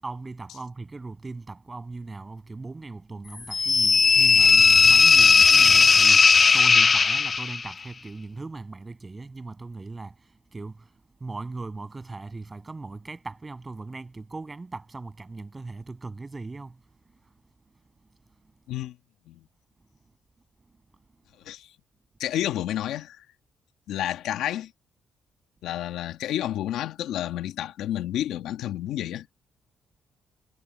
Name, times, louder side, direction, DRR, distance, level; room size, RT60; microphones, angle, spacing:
voice 1, 0.0-10.1 10.5-10.9 11.2-16.8, right 3 dB, 25° right, 7.9 m, -39 dB
sound 1, 3.5-7.7, left 5 dB, 35° left, 0.4 m, -17 dB
voice 2, 22.2-23.2 23.9-24.7 25.6-29.3, left 12 dB, 85° left, 1.6 m, -30 dB
cardioid pair, 90°, 0 cm